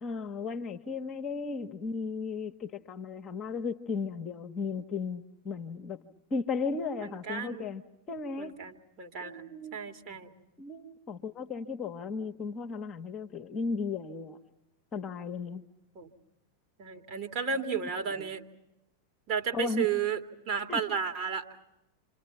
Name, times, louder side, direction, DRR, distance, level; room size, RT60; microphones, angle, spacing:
voice 1, 0.0-6.0 6.3-7.8 8.1-8.6 9.2-9.8 10.6-14.4 14.9-15.6 18.2-18.3 19.5-19.9 20.7-20.8, left 4 dB, 25° left, 6 dB, 1.0 m, -35 dB
voice 2, 7.0-7.7 8.4-9.4 9.7-10.3 16.0-16.1 16.8-18.4 19.3-20.2 20.5-21.4, right 6 dB, 40° right, 3 dB, 2.0 m, -33 dB
28.5 x 26.0 x 6.0 m, 0.92 s
figure-of-eight pair, 90°, 0 cm